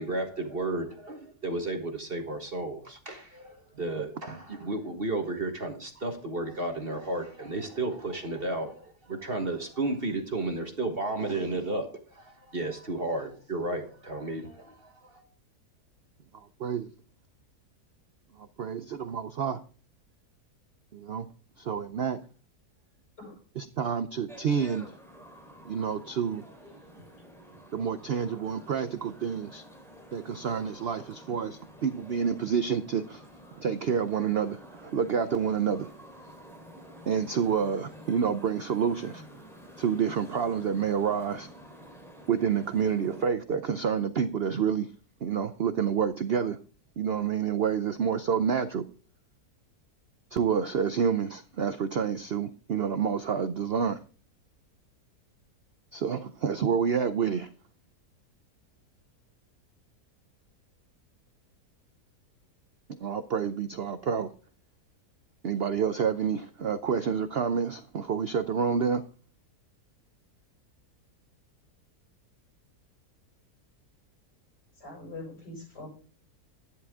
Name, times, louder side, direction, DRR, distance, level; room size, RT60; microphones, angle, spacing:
voice 1, 0.0-15.2, right 2 dB, 35° right, 5 dB, 1.5 m, -33 dB
voice 2, 16.3-16.9 18.4-19.6 20.9-21.3 21.6-22.2 23.6-24.9 25.6-26.4 27.7-29.6 30.1-33.2 33.6-35.9 37.1-39.2 39.8-41.5 42.3-44.9 45.2-46.6 47.0-48.8 50.3-54.0 55.9-57.5 63.0-64.3 65.4-69.0, right 7 dB, 65° right, 11 dB, 0.6 m, -28 dB
sound 1, 24.3-43.3, equal, ahead, 3.1 m, -50 dB
voice 3, 74.8-75.9, left 2 dB, 75° left, -1 dB, 7.7 m, -42 dB
11.0 x 10.5 x 3.6 m, 0.39 s
omnidirectional pair, 1.8 m